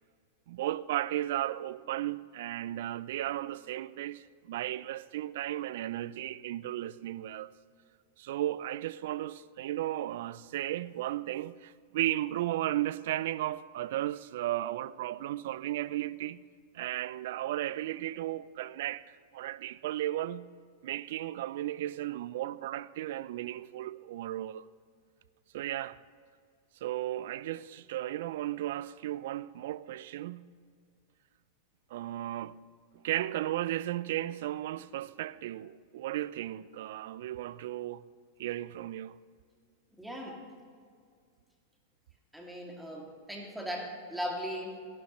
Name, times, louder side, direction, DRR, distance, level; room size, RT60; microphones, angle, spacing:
voice 1, 0.5-7.5 8.2-16.4 16.7-20.5 20.8-24.7 25.5-26.0 26.8-30.5 31.9-32.6 33.0-38.1 38.4-39.2, right 14 dB, 65° right, 0.4 m, -35 dB
voice 2, 40.0-40.4 42.3-44.8, equal, 5° right, 2.5 m, -38 dB
18.0 x 11.5 x 3.1 m
hypercardioid pair, 105°, 0 cm